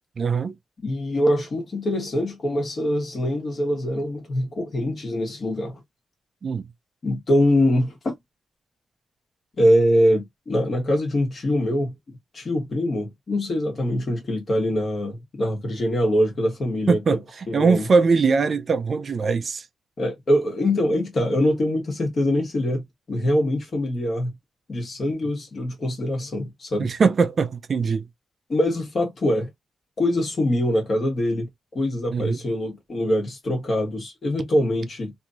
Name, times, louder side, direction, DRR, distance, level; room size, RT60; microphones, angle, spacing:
voice 1, 0.2-0.6 6.4-6.7 16.9-19.6 26.8-28.1 32.1-32.4, right 4 dB, 40° right, 0.4 m, -21 dB
voice 2, 0.8-5.8 7.0-8.1 9.6-11.9 12.3-17.0 17.5-17.9 20.0-24.3 24.7-26.9 28.5-29.5 30.0-35.1, left 1 dB, 40° left, 1.4 m, -23 dB
3.0 x 2.7 x 2.4 m
wide cardioid pair, 155°, 0 cm